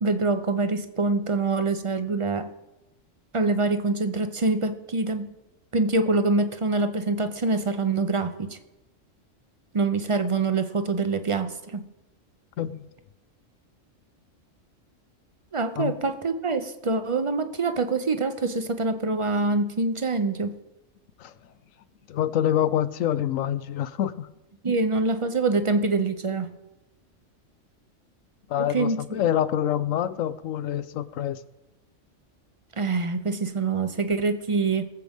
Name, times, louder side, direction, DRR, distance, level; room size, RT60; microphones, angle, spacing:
voice 1, 0.0-2.5 3.3-5.3 5.7-8.6 9.7-11.9 15.5-20.6 24.6-26.5 28.6-29.3 32.8-34.9, right 3 dB, 35° right, 9 dB, 0.5 m, -25 dB
voice 2, 12.6-12.9 15.8-16.0 21.2-21.3 22.1-24.3 28.5-31.4, left 10 dB, 80° left, 14 dB, 1.0 m, -26 dB
22.0 x 7.6 x 3.6 m, 0.98 s
omnidirectional pair, 1.3 m